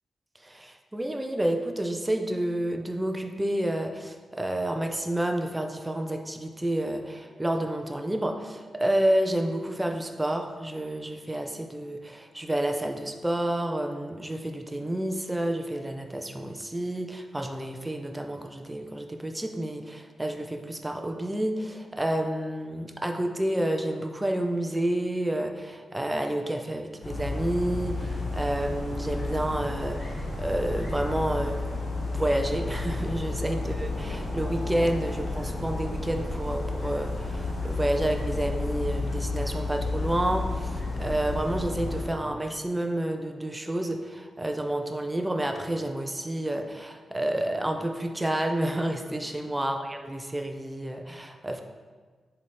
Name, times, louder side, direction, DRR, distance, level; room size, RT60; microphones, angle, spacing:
voice 1, 0.4-31.6 32.1-51.6, right 1 dB, 10° right, 4 dB, 0.4 m, -29 dB
sound 1, 27.0-42.1, left 2 dB, 40° left, 1.2 m, -31 dB
7.0 x 3.3 x 4.1 m, 1.4 s
wide cardioid pair, 145°, 0 cm